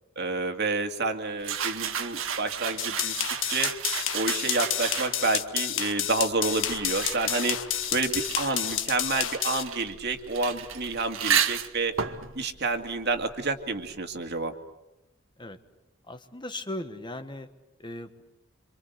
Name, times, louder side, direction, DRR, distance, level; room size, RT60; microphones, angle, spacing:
voice 1, 0.2-3.1 3.5-3.7 4.1-7.6 7.9-12.0 12.3-14.5, right 3 dB, 55° right, 5 dB, 2.4 m, -29 dB
sound 1, 1.4-5.4 6.2-13.6, right 8 dB, 70° right, 1.8 m, -33 dB
sound 2, 2.8-9.6, left 11 dB, 65° left, 1.6 m, -30 dB
voice 2, 16.1-17.5 17.8-18.2, left 1 dB, 20° left, 8 dB, 1.3 m, -37 dB
27.0 x 26.5 x 8.2 m, 0.96 s
head